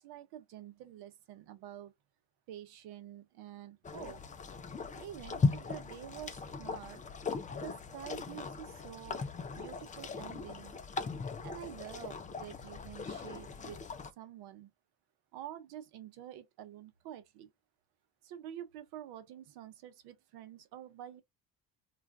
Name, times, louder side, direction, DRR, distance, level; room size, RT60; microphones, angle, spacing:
voice 1, 0.0-1.9 2.5-4.2 4.9-7.0 7.6-9.2 9.5-10.7 11.4-13.8 14.2-14.7 15.3-17.5 18.2-21.2, right 11 dB, 70° right, 0.8 m, -48 dB
sound 1, 3.8-14.1, left 4 dB, 20° left, 0.4 m, -38 dB
2.5 x 2.3 x 3.4 m
supercardioid pair, 80°, 41 cm